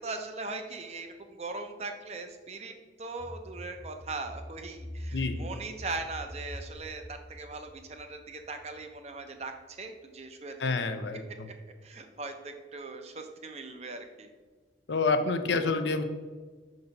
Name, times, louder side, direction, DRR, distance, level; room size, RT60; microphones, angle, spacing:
voice 1, 0.0-2.7 3.0-9.5 9.8-10.5 11.8-14.3, right 3 dB, 35° right, 6 dB, 0.6 m, -39 dB
sound 1, 3.2-8.8 9.2-9.3, equal, 10° left, 0.4 m, -43 dB
voice 2, 5.1-5.5 10.6-11.5 14.9-16.0, left 4 dB, 75° left, 9 dB, 0.5 m, -28 dB
5.8 x 4.0 x 5.3 m, 1.4 s
head